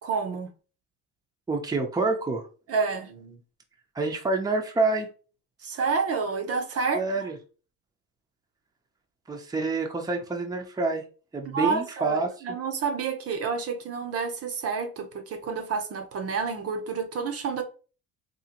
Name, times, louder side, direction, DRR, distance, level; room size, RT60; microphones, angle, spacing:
voice 1, 0.0-0.5 2.7-3.4 5.6-7.3 11.4-17.6, right 5 dB, 50° right, 0.8 m, -29 dB
voice 2, 1.5-2.4 3.9-5.1 6.9-7.3 9.3-11.0 11.3-12.3, right 3 dB, 10° right, 0.7 m, -27 dB
3.8 x 2.7 x 2.8 m
cardioid pair, 100°, 31 cm